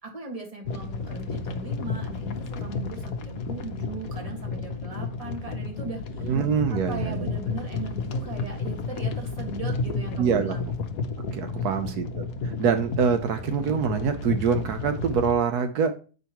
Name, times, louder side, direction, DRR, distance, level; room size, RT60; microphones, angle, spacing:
voice 1, 0.0-6.3 6.7-10.7 11.5-12.0, right 3 dB, 25° right, 1 dB, 1.7 m, -39 dB
sound 1, 0.6-15.3, left 4 dB, 65° left, 1.2 m, -32 dB
voice 2, 6.2-7.3 10.2-10.6 11.3-15.9, right 6 dB, 75° right, 8 dB, 1.2 m, -25 dB
8.6 x 5.3 x 2.9 m, 0.36 s
omnidirectional pair, 1.7 m